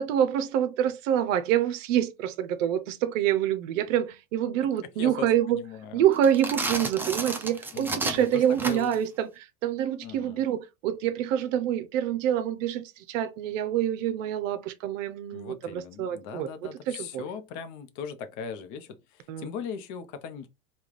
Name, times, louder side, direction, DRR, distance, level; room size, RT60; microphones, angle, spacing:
voice 1, 0.0-5.6 5.9-17.3 19.3-19.5, right 10 dB, 65° right, 0.6 m, -26 dB
voice 2, 5.0-6.0 7.7-8.9 10.0-10.4 15.3-20.5, left 6 dB, 45° left, 0.7 m, -39 dB
sound 1, 6.1-9.1, right 3 dB, 5° right, 0.3 m, -32 dB
3.5 x 2.3 x 3.1 m
hypercardioid pair, 95°, 42 cm